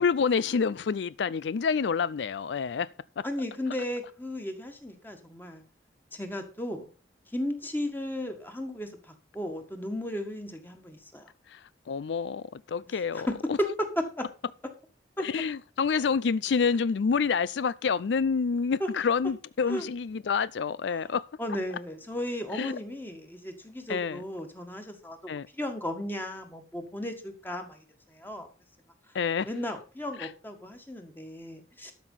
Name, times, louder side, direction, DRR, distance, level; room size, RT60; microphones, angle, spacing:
voice 1, 0.0-2.9 3.2-3.3 11.5-13.6 15.2-21.2 22.5-22.8 23.9-24.2 25.3-25.5 29.1-29.5 30.2-30.3, left 5 dB, 75° left, 0.4 m, -28 dB
voice 2, 3.2-5.6 6.1-6.9 7.3-11.3 12.9-13.2 13.6-13.7 14.0-14.3 15.2-15.3 18.8-18.9 19.7-19.8 21.4-25.2 25.5-27.8 28.1-28.5 29.4-31.9, left 1 dB, 10° left, 1.8 m, -35 dB
12.5 x 6.1 x 5.6 m
head